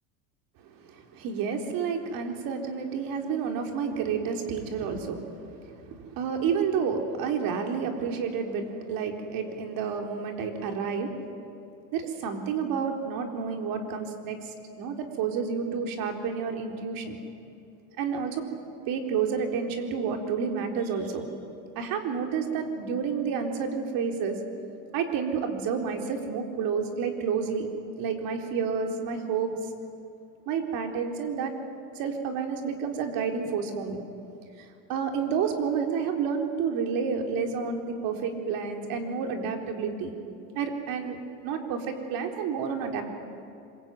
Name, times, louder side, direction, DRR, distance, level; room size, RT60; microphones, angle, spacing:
voice 1, 0.8-11.1 11.9-14.5 14.8-17.2 18.0-18.5 18.9-21.3 21.7-24.4 24.9-27.7 28.0-29.5 30.5-31.5 32.0-34.0 34.6-40.1 40.5-41.2 41.4-43.0, right 6 dB, 60° right, 3 dB, 4.1 m, -30 dB
26.5 x 23.5 x 9.2 m, 2.6 s
supercardioid pair, 115°, 40 cm